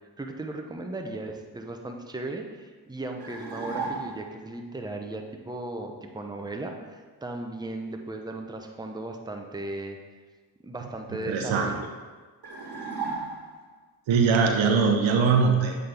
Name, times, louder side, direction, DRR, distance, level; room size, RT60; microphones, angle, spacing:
voice 1, 0.2-10.0 10.6-11.9, right 2 dB, 10° right, 3 dB, 0.7 m, -36 dB
sound 1, 3.2-4.4 12.4-13.7, right 4 dB, 55° right, 1.5 m, -34 dB
voice 2, 11.3-11.7 14.1-15.8, right 5 dB, 80° right, 4 dB, 0.8 m, -21 dB
7.7 x 4.0 x 3.4 m, 1.4 s
supercardioid pair, 45°, 46 cm